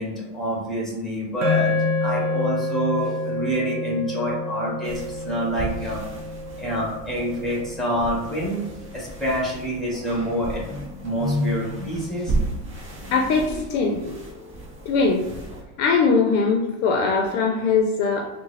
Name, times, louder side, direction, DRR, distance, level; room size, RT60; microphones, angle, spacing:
voice 1, 0.0-6.0 6.6-8.7 8.9-10.6 11.0-12.3, equal, ahead, -4 dB, 1.5 m, -27 dB
sound 1, 1.4-9.8, left 2 dB, 55° right, 0.8 m, -29 dB
sound 2, 4.8-15.6, right 3 dB, 25° right, 0.9 m, -35 dB
sound 3, 9.5-15.2, left 3 dB, 25° left, 1.0 m, -34 dB
voice 2, 13.1-14.0 14.9-15.2 15.8-18.3, left 4 dB, 55° left, 2 dB, 0.7 m, -21 dB
3.5 x 2.2 x 3.2 m, 1.0 s
hypercardioid pair, 95°, 48 cm